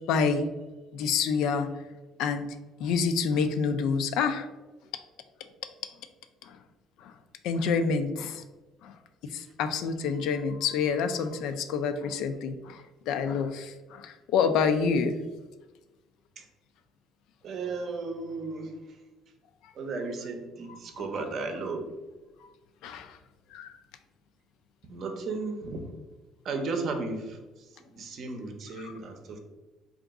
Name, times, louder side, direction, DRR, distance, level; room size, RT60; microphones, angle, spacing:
voice 1, 0.1-0.5 0.9-1.7 2.2-2.5 2.8-4.5 7.0-7.1 7.4-8.4 8.8-8.9 9.3-12.8 13.1-15.2 20.7-21.1 22.8-23.2 23.5-23.7 28.8-28.9, left 5 dB, 75° left, 9 dB, 0.3 m, -27 dB
voice 2, 17.4-18.7 19.8-21.9 24.9-25.8 26.4-27.4 28.0-29.4, right 3 dB, 50° right, 4 dB, 0.6 m, -34 dB
3.8 x 2.4 x 3.5 m, 1.2 s
cardioid pair, 125°, 0 cm